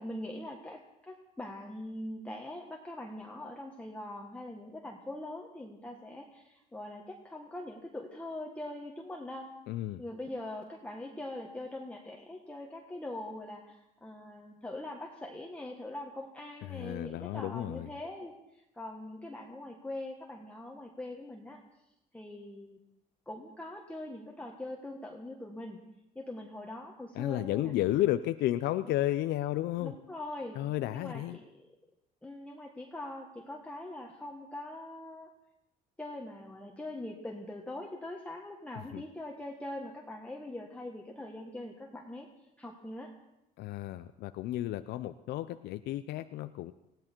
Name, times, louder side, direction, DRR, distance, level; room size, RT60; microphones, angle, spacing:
voice 1, 0.0-9.5 10.0-21.6 22.1-22.8 23.3-25.8 26.1-27.7 29.8-30.6 30.9-31.5 32.2-35.3 36.0-42.3 42.6-43.1, left 1 dB, 5° left, 0 dB, 1.5 m, -42 dB
voice 2, 9.7-10.0 16.7-17.9 27.2-29.9 30.6-31.4 38.8-39.0 43.6-46.7, left 14 dB, 75° left, 11 dB, 0.6 m, -32 dB
20.0 x 16.0 x 4.5 m, 0.88 s
cardioid pair, 110°, 17 cm